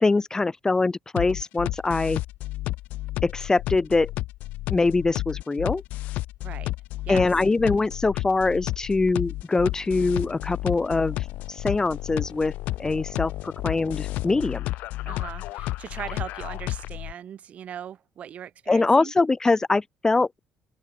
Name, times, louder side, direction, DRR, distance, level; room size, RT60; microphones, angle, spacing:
voice 1, 0.0-2.2 3.2-4.1 4.7-5.8 7.1-11.2 11.5-12.5 12.8-14.7 18.7-20.4, left 3 dB, 20° left, 0.8 m, -23 dB
sound 1, 1.2-17.1, left 17 dB, 70° left, 0.7 m, -32 dB
voice 2, 6.4-6.7 7.0-7.3 15.1-19.1, right 9 dB, 55° right, 5.2 m, -39 dB
open air
hypercardioid pair, 55°, 3 cm